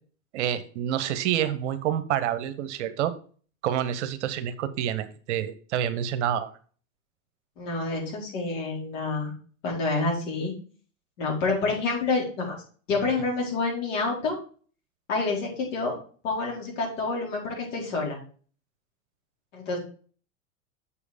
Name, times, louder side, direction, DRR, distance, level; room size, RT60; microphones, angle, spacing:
voice 1, 0.3-3.1 3.6-6.5, right 10 dB, 55° right, 12 dB, 1.0 m, -28 dB
voice 2, 7.6-9.3 9.6-10.5 11.2-12.6 12.9-14.4 15.1-15.9 16.2-18.2 19.5-19.8, left 3 dB, 60° left, -2 dB, 4.2 m, -28 dB
6.9 x 5.1 x 4.9 m, 0.41 s
hypercardioid pair, 100°, 41 cm